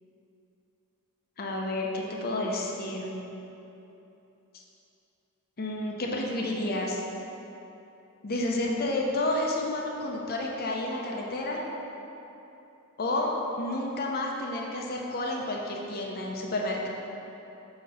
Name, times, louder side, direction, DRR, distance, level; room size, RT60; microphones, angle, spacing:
voice 1, 1.4-3.1 4.5-4.6 5.6-7.0 8.2-11.6 13.0-13.3 13.6-16.9, left 1 dB, 45° left, -1 dB, 0.7 m, -30 dB
8.6 x 3.0 x 5.5 m, 3.0 s
head